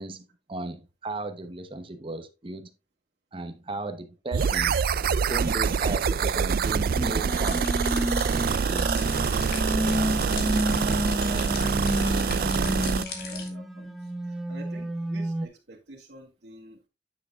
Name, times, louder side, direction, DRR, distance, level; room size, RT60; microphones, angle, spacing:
voice 1, 0.0-2.7 3.3-4.8 5.3-7.7 8.7-9.0, right 2 dB, 30° right, 0.9 m, -35 dB
sound 1, 4.3-13.0, right 6 dB, 55° right, 0.4 m, -25 dB
sound 2, 6.9-15.5, equal, ahead, 0.8 m, -31 dB
sound 3, 7.3-13.5, left 5 dB, 60° left, 2.1 m, -39 dB
voice 2, 11.5-16.9, right 1 dB, 70° right, 2.0 m, -49 dB
9.4 x 7.7 x 2.4 m
head